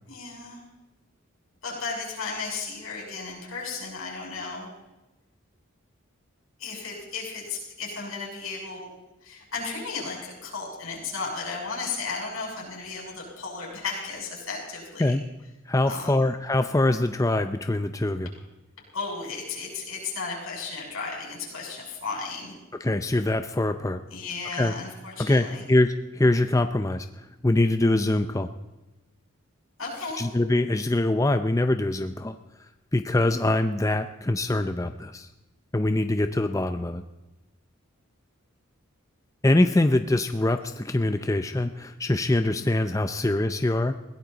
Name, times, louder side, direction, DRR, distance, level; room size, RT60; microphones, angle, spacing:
voice 1, 0.1-0.6 1.6-4.7 6.6-8.9 9.2-15.2 15.9-16.2 18.9-22.6 24.1-25.6 29.8-30.3, left 4 dB, 80° left, -2 dB, 6.8 m, -34 dB
voice 2, 15.7-18.3 22.8-24.0 24.6-24.7 25.2-28.5 30.2-32.4 32.9-35.3 35.7-37.0 39.4-44.0, left 2 dB, 15° left, 8 dB, 0.5 m, -24 dB
21.5 x 16.5 x 4.0 m, 1.0 s
head